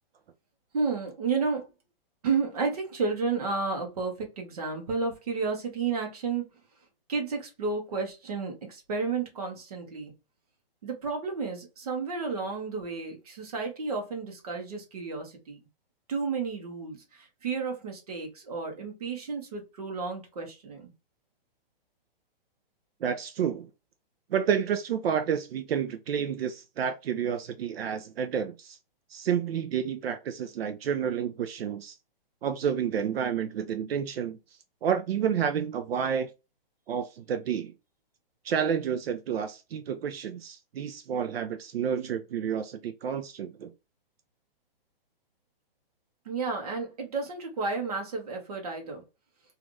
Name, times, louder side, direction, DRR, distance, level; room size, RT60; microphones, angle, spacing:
voice 1, 0.7-1.7 2.2-6.4 7.1-10.1 10.8-15.6 16.1-20.9 46.2-49.0, right 4 dB, 40° right, 0.9 m, -32 dB
voice 2, 23.0-23.7 24.3-28.8 29.1-32.0 32.4-34.4 34.8-36.3 36.9-37.7 38.4-43.7, right 8 dB, 75° right, 0.5 m, -30 dB
3.2 x 2.5 x 2.5 m
hypercardioid pair, 175°, 30 cm